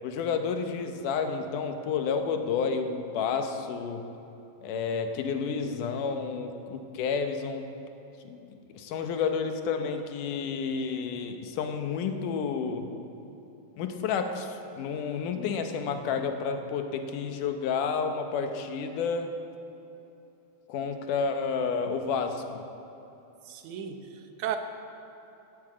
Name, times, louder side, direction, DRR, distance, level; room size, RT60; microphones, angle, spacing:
voice 1, 0.0-4.1 4.6-7.7 8.2-12.9 13.8-19.4 20.7-22.6, left 5 dB, 90° left, 6 dB, 2.5 m, -30 dB
voice 2, 23.5-24.6, right 9 dB, 75° right, 6 dB, 2.3 m, -35 dB
14.5 x 9.9 x 8.5 m, 3.0 s
omnidirectional pair, 3.6 m